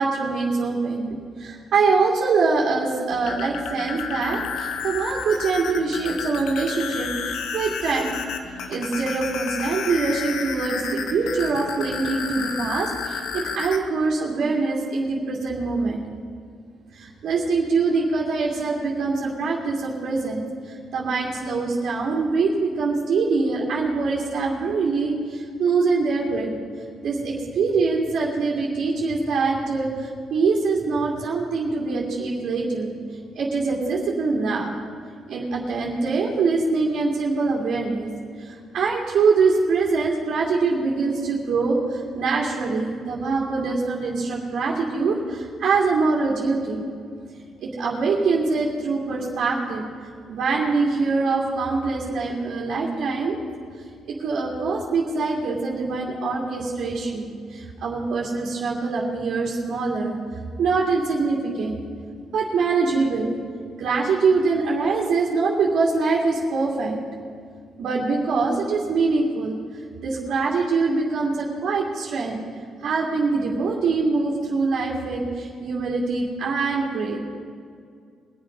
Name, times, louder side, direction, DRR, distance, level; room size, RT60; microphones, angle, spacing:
voice 1, 0.0-8.3 8.7-16.0 16.9-26.5 27.0-32.9 33.3-34.7 35.3-38.1 38.4-46.8 47.6-49.8 50.3-53.4 54.0-60.1 60.6-61.8 62.3-63.3 63.8-67.0 67.8-69.6 70.0-72.4 72.8-77.2, right 4 dB, 70° right, -5 dB, 2.6 m, -24 dB
sound 1, 3.1-13.8, left 6 dB, 85° left, 1.1 m, -31 dB
22.5 x 7.8 x 5.3 m, 2.2 s
cardioid pair, 90°, 0 cm